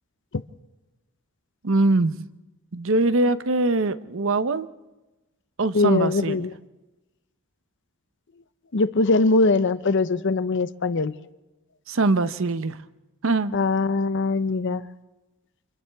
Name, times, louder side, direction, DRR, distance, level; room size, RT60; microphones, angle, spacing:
voice 1, 1.6-2.2 2.7-4.7 5.6-6.4 11.9-12.8 13.2-13.5, right 2 dB, 65° right, 0.8 m, -22 dB
voice 2, 5.7-6.5 8.7-11.1 13.5-14.8, left 3 dB, 55° left, 0.7 m, -21 dB
30.0 x 27.0 x 3.5 m
head